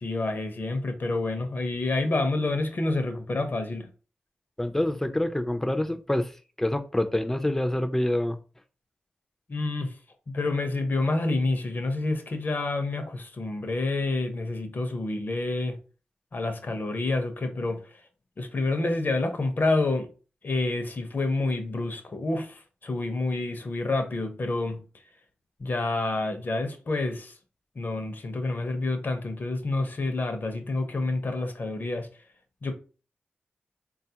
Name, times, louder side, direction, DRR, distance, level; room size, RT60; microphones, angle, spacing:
voice 1, 0.0-3.9 9.5-10.0 10.3-15.8 16.3-18.0 18.4-20.1 20.4-24.8 25.6-27.3 27.8-32.1 32.6-32.7, left 2 dB, 55° left, 0.6 m, -28 dB
voice 2, 4.6-6.3 6.6-8.4, left 1 dB, 10° left, 0.4 m, -26 dB
3.6 x 2.3 x 2.8 m
cardioid pair, 65°, 4 cm